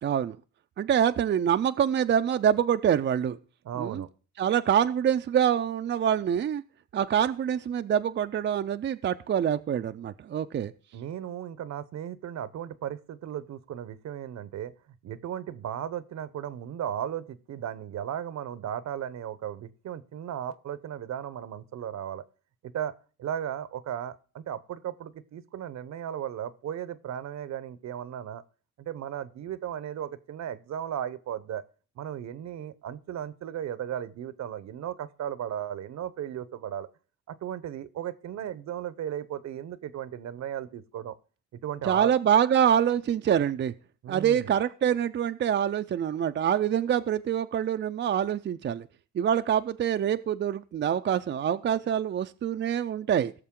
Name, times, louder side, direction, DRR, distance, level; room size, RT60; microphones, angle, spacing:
voice 1, 0.0-0.4 0.8-3.4 3.8-4.0 4.4-6.6 6.9-10.7 41.8-43.7 44.1-48.9 49.1-53.3, right 9 dB, 40° right, 0.4 m, -25 dB
voice 2, 3.6-4.1 10.9-14.7 15.0-22.2 22.6-22.9 23.2-28.4 28.8-31.6 32.0-36.9 37.3-41.2 41.5-42.1 44.0-44.5, right 10 dB, 65° right, 0.8 m, -36 dB
17.0 x 6.7 x 3.7 m
cardioid pair, 90°, 30 cm